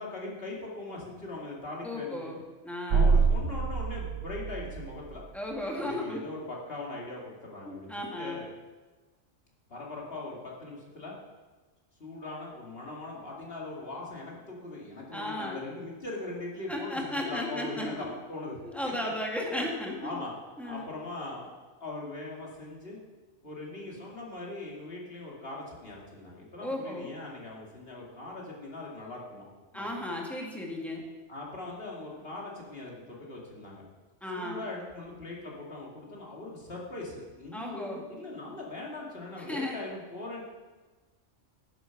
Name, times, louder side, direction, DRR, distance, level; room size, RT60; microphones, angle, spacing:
voice 1, 0.0-2.3 2.9-5.2 5.8-8.4 9.7-11.1 12.0-19.1 20.0-20.3 20.6-23.0 23.4-29.4 29.7-29.9 31.3-33.9 34.3-40.4, left 2 dB, 50° left, -3 dB, 2.6 m, -40 dB
voice 2, 1.8-3.1 5.3-6.2 7.7-8.4 15.1-15.6 16.7-18.1 18.6-20.2 20.6-20.9 26.6-27.1 29.7-31.0 34.2-34.6 37.5-38.0 39.5-39.8, left 1 dB, ahead, -1 dB, 1.9 m, -35 dB
sound 1, 2.9-5.3, right 4 dB, 85° right, 1.2 m, -26 dB
10.5 x 8.9 x 5.9 m, 1.3 s
omnidirectional pair, 1.2 m